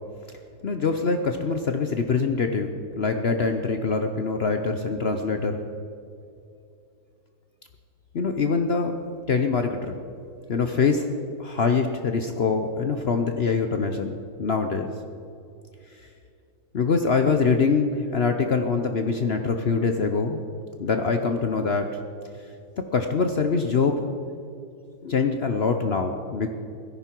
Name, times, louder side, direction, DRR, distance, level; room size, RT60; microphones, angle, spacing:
voice 1, 0.6-5.6 8.1-9.0 9.3-9.9 10.5-11.1 11.4-14.9 16.7-20.4 20.8-22.0 22.9-24.1 25.0-26.5, left 4 dB, 60° left, 6 dB, 0.6 m, -24 dB
16.0 x 14.0 x 4.5 m, 2.5 s
omnidirectional pair, 2.0 m